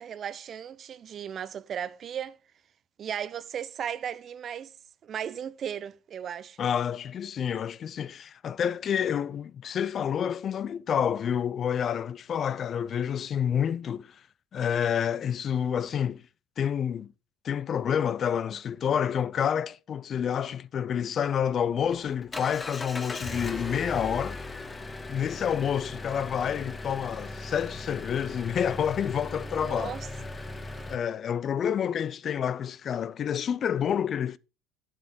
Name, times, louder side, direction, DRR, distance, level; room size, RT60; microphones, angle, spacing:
voice 1, 0.0-2.4 3.0-4.7 5.0-6.6 29.5-30.1, right 8 dB, 45° right, 0.6 m, -36 dB
voice 2, 6.6-14.2 14.5-16.2 16.6-17.1 17.4-24.4 25.1-30.0 30.9-34.4, left 8 dB, 45° left, 0.4 m, -28 dB
Engine, 21.4-31.0, left 2 dB, 20° left, 1.1 m, -38 dB
9.6 x 7.4 x 3.8 m
hypercardioid pair, 80°, 0 cm